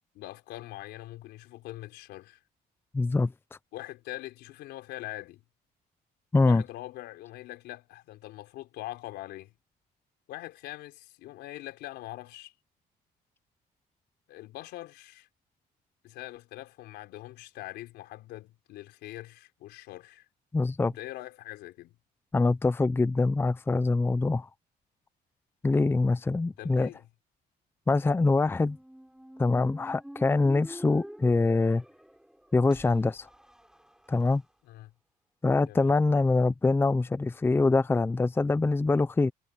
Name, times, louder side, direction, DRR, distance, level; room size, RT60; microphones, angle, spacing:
voice 1, 0.1-2.4 3.7-5.4 6.4-9.6 10.3-12.5 14.3-15.3 16.0-20.3 20.8-22.0 26.6-27.0 34.6-34.9 35.6-35.9, left 16 dB, 85° left, 3.8 m, -43 dB
voice 2, 2.9-3.3 6.3-6.6 20.5-20.9 22.3-24.5 25.6-26.9 27.9-28.8 29.4-31.8 32.5-33.3 34.1-34.4 35.4-39.3, left 3 dB, 15° left, 0.6 m, -24 dB
Squeak, 28.4-34.4, right 1 dB, 5° right, 7.2 m, -47 dB
cardioid pair, 110°, 17 cm